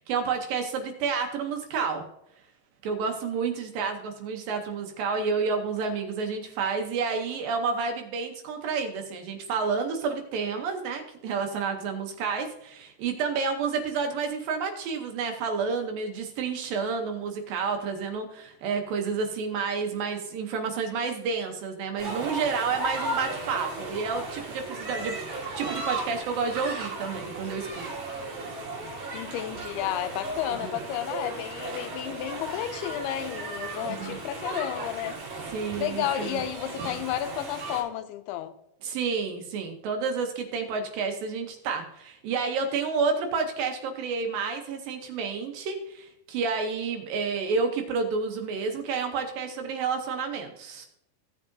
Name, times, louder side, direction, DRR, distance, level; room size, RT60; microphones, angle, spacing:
voice 1, 0.0-2.0 2.8-25.2 25.6-27.9 30.5-30.8 33.8-34.2 35.5-36.4 38.8-50.9, right 5 dB, 75° right, 2.4 m, -30 dB
sound 1, 22.0-37.8, right 2 dB, 55° right, 3.4 m, -35 dB
voice 2, 29.1-35.2 35.8-38.5, left 12 dB, 80° left, 2.5 m, -32 dB
16.0 x 7.3 x 2.6 m
omnidirectional pair, 4.6 m